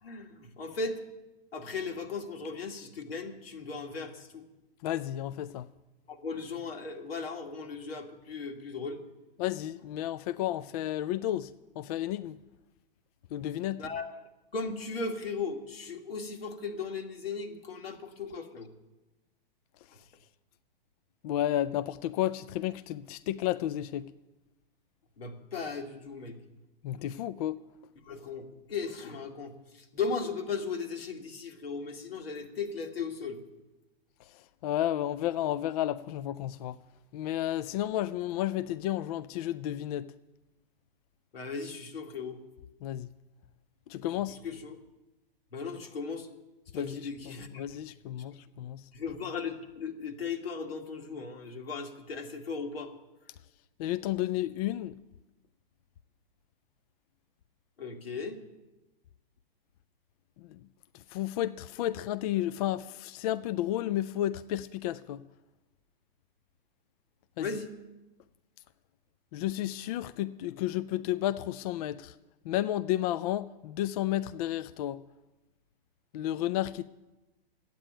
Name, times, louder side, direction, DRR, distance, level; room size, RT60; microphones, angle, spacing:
voice 1, 0.0-1.0 1.5-4.4 6.1-9.0 13.7-14.1 14.5-18.7 25.2-26.4 28.1-33.4 41.3-42.4 44.4-44.8 45.5-46.3 46.7-47.6 48.9-52.9 57.8-58.4 67.4-67.7, left 4 dB, 85° left, 2.2 m, -37 dB
voice 2, 4.8-5.7 9.4-11.5 11.8-12.4 13.3-13.9 21.2-24.1 26.8-27.6 34.3-36.8 37.1-40.1 42.8-43.1 43.9-44.4 46.7-48.8 53.8-55.0 60.4-60.6 60.9-65.2 67.4-67.5 69.3-72.1 72.5-75.0 76.1-76.8, left 13 dB, 40° left, 0.4 m, -32 dB
12.0 x 9.1 x 8.8 m
hypercardioid pair, 130°, 30 cm